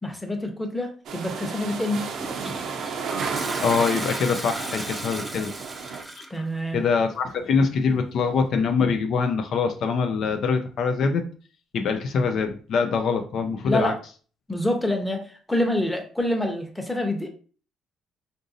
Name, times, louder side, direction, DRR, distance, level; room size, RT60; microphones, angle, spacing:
voice 1, 0.0-2.1 6.3-6.8 13.6-14.0 14.5-17.3, left 1 dB, 10° left, 4 dB, 0.8 m, -26 dB
sound 1, 1.1-6.0, right 5 dB, 65° right, 0.5 m, -33 dB
Toilet flush, 2.2-6.4, right 1 dB, 15° right, 0.5 m, -35 dB
voice 2, 3.6-5.5 6.2-6.3 6.7-11.2 11.7-13.9, left 5 dB, 65° left, 6 dB, 0.4 m, -24 dB
3.9 x 2.6 x 2.5 m, 0.39 s
cardioid pair, 85°, 0 cm